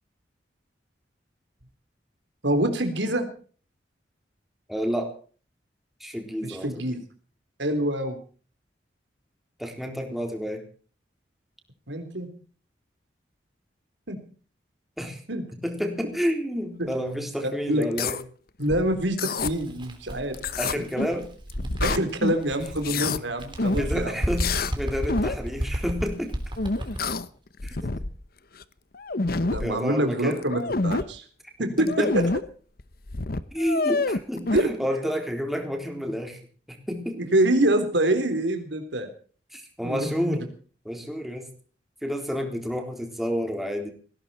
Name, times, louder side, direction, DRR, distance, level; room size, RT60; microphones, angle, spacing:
voice 1, 2.4-3.3 6.4-7.0 7.6-8.2 10.1-10.2 11.9-12.3 14.1-14.2 15.3-15.5 16.8-16.9 17.7-17.9 18.6-20.4 20.7-20.8 21.8-24.2 29.5-31.2 31.6-31.9 34.5-34.7 37.1-39.1 39.8-40.4, right 1 dB, 90° right, 7 dB, 3.7 m, -25 dB
voice 2, 4.7-5.1 6.0-6.8 9.6-10.6 15.0-15.2 15.5-18.2 20.6-21.3 22.9-23.2 23.7-26.4 27.6-28.1 29.6-30.4 31.8-32.1 33.5-36.4 36.7-37.2 39.5-40.5 40.8-41.5 42.0-43.9, equal, ahead, 3 dB, 3.8 m, -30 dB
sound 1, 17.8-18.2 18.7-19.5 20.3-21.2 21.5-22.4 22.7-23.2 23.6-23.9 24.4-24.7 25.1-25.4 26.6-27.3 27.6-28.2 28.6-28.7 28.9-29.7 30.3-31.0 31.8-32.4 32.8-32.9 33.1-34.6, left 3 dB, 55° left, 1.0 m, -27 dB
Bird, 19.4-22.9 23.3-27.2, equal, 25° right, 3.4 m, -32 dB
18.5 x 17.0 x 4.3 m, 0.41 s
head